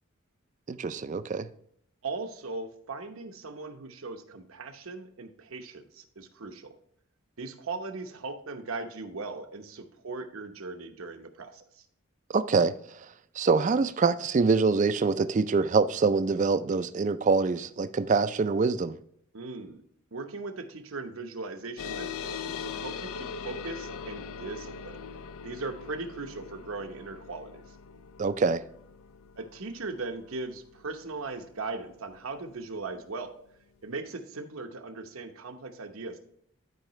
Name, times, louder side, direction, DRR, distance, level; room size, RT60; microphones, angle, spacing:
voice 1, 0.7-1.5 12.3-12.8 13.4-19.0 28.2-28.6, right 4 dB, 35° right, 0.4 m, -25 dB
voice 2, 2.0-6.7 7.4-11.9 19.3-19.8 20.1-25.0 25.4-27.8 29.4-33.4 33.8-36.2, right 3 dB, 75° right, 0.9 m, -39 dB
sound 1, 21.8-32.7, left 6 dB, 75° left, 0.4 m, -41 dB
12.0 x 4.8 x 3.1 m
head